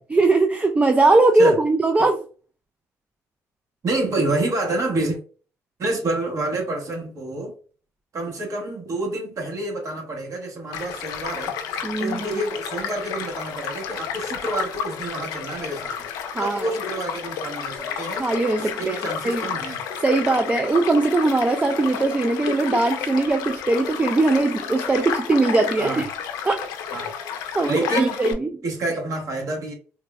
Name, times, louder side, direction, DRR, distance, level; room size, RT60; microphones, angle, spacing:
voice 1, 0.0-2.2 11.8-12.4 16.3-16.6 18.2-19.5 20.0-26.1 26.4-26.7 27.5-28.5, right 2 dB, 20° right, 0.3 m, -20 dB
voice 2, 3.8-5.2 5.8-7.5 8.1-11.5 12.0-16.0 16.4-18.3 18.6-19.8 23.7-23.8 25.8-26.0 26.9-27.1 27.6-28.2 28.6-29.7, right 2 dB, 55° right, 1.2 m, -28 dB
Child speech kid speaking / Stream / Car passing by, 10.7-28.3, left 7 dB, 85° left, 0.4 m, -31 dB
3.5 x 2.0 x 2.3 m
supercardioid pair, 70°, 6 cm